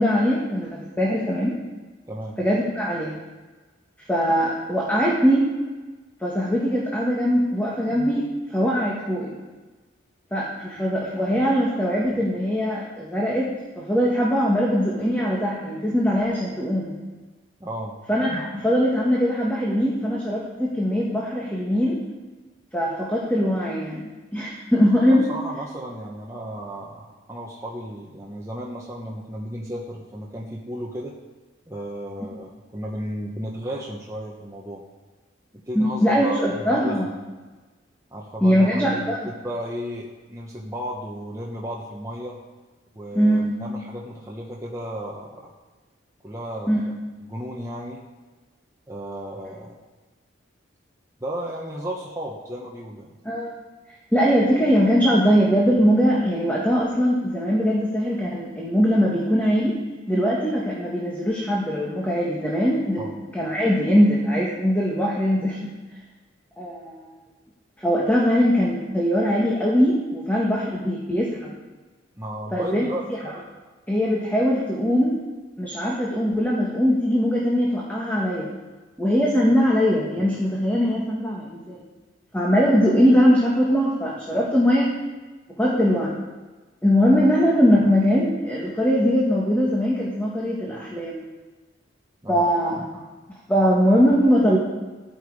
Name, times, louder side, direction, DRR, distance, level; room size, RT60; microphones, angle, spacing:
voice 1, 0.0-1.6 2.4-3.2 4.1-5.5 6.2-9.3 10.3-16.9 18.1-22.0 22.7-25.3 35.7-37.1 38.4-39.2 43.1-43.5 46.7-46.8 53.2-53.5 54.1-59.8 60.1-65.7 66.6-67.1 67.8-71.5 72.5-73.2 73.9-75.2 75.6-78.5 79.0-81.8 82.3-84.9 85.6-86.1 86.8-91.2 92.3-92.8 93.5-94.6, equal, 10° left, -4 dB, 1.6 m, -21 dB
voice 2, 2.1-2.4 17.6-17.9 25.1-31.1 31.7-34.8 35.7-36.9 38.1-42.4 42.9-45.5 46.2-46.9 47.2-48.0 48.9-49.7 51.2-53.1 63.0-63.1 72.2-73.1 92.2-92.4, equal, 15° right, -3 dB, 1.2 m, -34 dB
14.0 x 9.3 x 4.9 m, 1.3 s
head